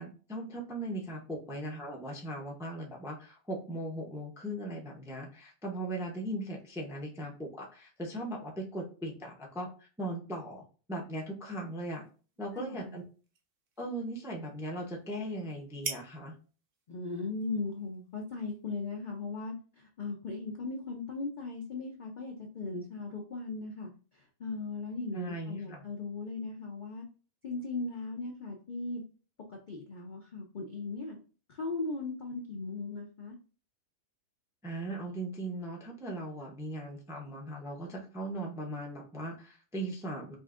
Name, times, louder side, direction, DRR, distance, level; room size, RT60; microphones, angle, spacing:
voice 1, 0.0-10.6 10.9-12.0 12.4-13.0 13.8-16.3 25.1-25.8 34.6-40.4, right 1 dB, 5° right, 0 dB, 0.4 m, -38 dB
sound 1, 11.5-19.2, right 4 dB, 50° right, 0.7 m, -48 dB
voice 2, 12.6-13.0 16.9-19.5 20.0-23.9 24.4-27.1 27.4-29.0 29.5-31.2 31.5-33.4, left 3 dB, 55° left, -1 dB, 0.5 m, -38 dB
5.3 x 2.6 x 2.5 m, 0.37 s
omnidirectional pair, 1.6 m